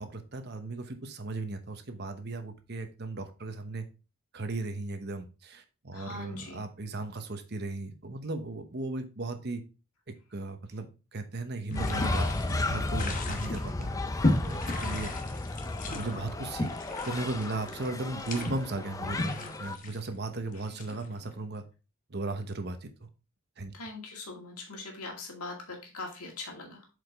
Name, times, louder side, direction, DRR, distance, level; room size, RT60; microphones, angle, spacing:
voice 1, 0.0-3.9 4.3-9.6 10.1-14.0 14.4-15.1 15.9-16.7 17.0-21.6 22.1-22.9 23.6-23.7, right 2 dB, 50° right, 8 dB, 1.0 m, -36 dB
voice 2, 5.9-6.6 20.7-20.8 23.7-26.9, left 3 dB, 90° left, 1 dB, 2.2 m, -41 dB
sound 1, 11.7-21.3, left 2 dB, 35° left, 1.1 m, -35 dB
sound 2, 11.7-19.8, left 2 dB, 15° left, 0.4 m, -34 dB
7.8 x 5.0 x 3.5 m, 0.32 s
head